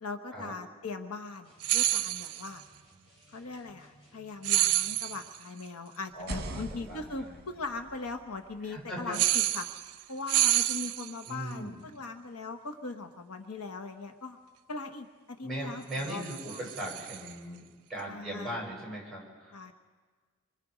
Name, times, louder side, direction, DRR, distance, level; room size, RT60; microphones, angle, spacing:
voice 1, 0.0-2.6 3.3-9.7 10.1-14.4 14.7-16.7 18.0-18.6 19.5-19.7, left 3 dB, 85° left, 7 dB, 1.2 m, -40 dB
sound 1, 1.4-5.3, right 1 dB, 25° left, 6.0 m, -60 dB
sound 2, 1.6-2.5 4.4-5.4 9.1-10.0 10.3-11.3 15.9-17.3, right 15 dB, 85° right, 0.5 m, -28 dB
voice 2, 6.1-7.4 8.6-9.2 11.3-11.8 15.4-17.6 17.9-19.7, right 1 dB, ahead, -3 dB, 7.3 m, -39 dB
sound 3, 6.1-9.9, right 2 dB, 45° right, 1.4 m, -44 dB
26.0 x 24.5 x 5.1 m, 1.5 s
head